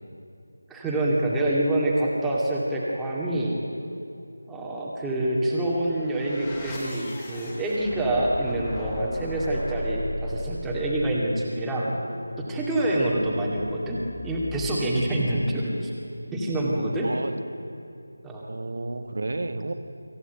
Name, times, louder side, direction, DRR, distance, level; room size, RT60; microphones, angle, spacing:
voice 1, 0.7-3.6 4.5-11.9 12.4-14.0 14.2-15.9 16.3-17.1 18.2-18.4, right 1 dB, 5° right, -5 dB, 2.3 m, -26 dB
sound 1, 5.5-16.3, left 1 dB, 20° left, 3.5 m, -37 dB
voice 2, 18.5-19.7, right 2 dB, 50° right, 8 dB, 1.6 m, -31 dB
25.5 x 15.0 x 9.1 m, 2.7 s
figure-of-eight pair, 165°, 0 cm